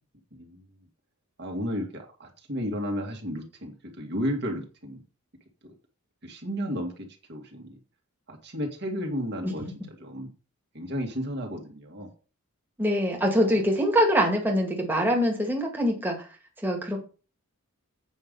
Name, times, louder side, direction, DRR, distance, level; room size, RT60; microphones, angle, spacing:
voice 1, 0.3-0.6 1.4-5.0 5.6-5.7 6.2-7.8 8.3-10.3 10.7-12.1 13.1-13.6, equal, 50° right, 2 dB, 2.2 m, -33 dB
voice 2, 12.8-16.3 16.6-17.0, equal, 10° right, -1 dB, 1.9 m, -24 dB
8.5 x 5.7 x 5.4 m, 0.34 s
head